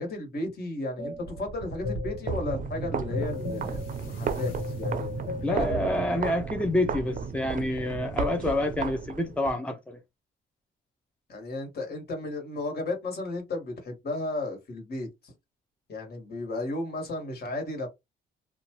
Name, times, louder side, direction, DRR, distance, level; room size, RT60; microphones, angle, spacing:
voice 1, 0.0-4.5 4.8-5.9 11.3-15.3 15.9-17.9, left 2 dB, 55° left, 1.6 m, -34 dB
sound 1, 1.0-6.1, left 2 dB, 85° left, 1.2 m, -35 dB
sound 2, 2.2-9.5, right 6 dB, 45° right, 0.6 m, -34 dB
voice 2, 5.4-10.0, left 1 dB, 5° left, 0.5 m, -28 dB
2.7 x 2.3 x 2.9 m
cardioid pair, 90°, 20 cm